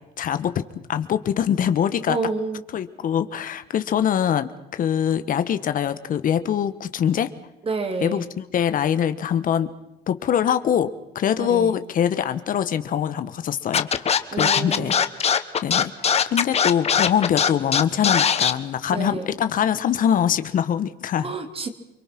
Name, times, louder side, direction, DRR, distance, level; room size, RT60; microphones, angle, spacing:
voice 1, 0.2-0.5 0.9-2.2 2.7-7.3 8.0-9.7 10.1-10.9 11.1-15.0 15.2-21.3, left 9 dB, 55° left, 11 dB, 1.4 m, -23 dB
voice 2, 2.1-2.6 7.6-8.2 11.4-11.7 14.3-15.0 18.9-19.2 21.2-21.7, right 4 dB, 35° right, 7 dB, 3.1 m, -29 dB
Scratching (performance technique), 13.7-18.5, left 7 dB, 40° left, 1.4 m, -20 dB
29.0 x 22.5 x 6.1 m, 0.93 s
cardioid pair, 110°, 17 cm